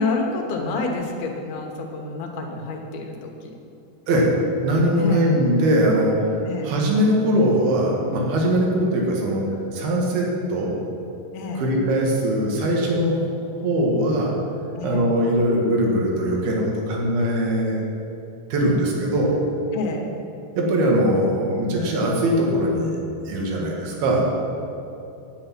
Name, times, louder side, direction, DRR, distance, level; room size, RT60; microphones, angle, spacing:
voice 1, 0.0-3.6 4.9-5.2 6.5-6.7 11.3-11.7 14.8-15.0 19.7-20.1, left 3 dB, 75° left, 2 dB, 3.0 m, -28 dB
voice 2, 4.6-6.4 6.6-9.4 9.7-10.7 11.6-13.2 13.6-14.3 14.8-17.8 18.5-19.4 20.6-23.0 23.3-24.3, equal, 75° right, -1 dB, 3.6 m, -21 dB
9.9 x 9.5 x 6.0 m, 2.8 s
omnidirectional pair, 4.5 m